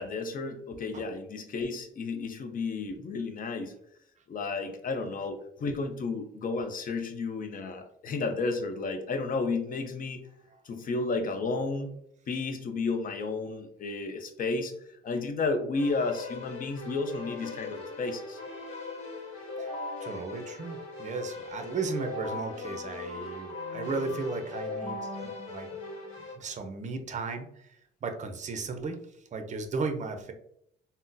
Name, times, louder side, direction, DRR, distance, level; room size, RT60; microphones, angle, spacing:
voice 1, 0.0-3.7 4.3-10.2 10.6-12.0 12.3-14.7 15.0-18.4, left 3 dB, 45° left, 7 dB, 0.6 m, -32 dB
Keyboard (musical), 15.7-26.3, left 3 dB, 85° left, 1.0 m, -39 dB
voice 2, 20.0-25.7 26.3-27.5 28.0-29.0 29.3-30.3, right 4 dB, 35° right, 6 dB, 0.5 m, -35 dB
3.6 x 2.1 x 2.6 m, 0.71 s
cardioid pair, 90°, 20 cm